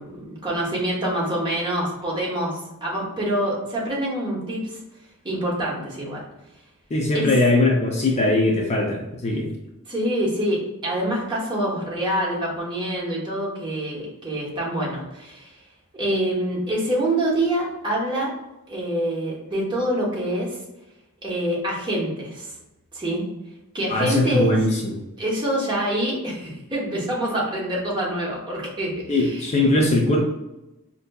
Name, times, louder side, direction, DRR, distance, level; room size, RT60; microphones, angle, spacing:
voice 1, 0.0-4.8 5.2-6.2 7.1-7.3 9.9-15.5 15.9-18.3 18.7-20.6 21.2-22.5 22.9-23.2 23.7-24.5 25.2-29.5, right 1 dB, 20° right, -4 dB, 0.9 m, -26 dB
voice 2, 6.9-9.5 23.9-25.0 29.1-30.2, left 2 dB, 30° left, -1 dB, 0.4 m, -20 dB
4.4 x 2.6 x 2.2 m, 0.95 s
head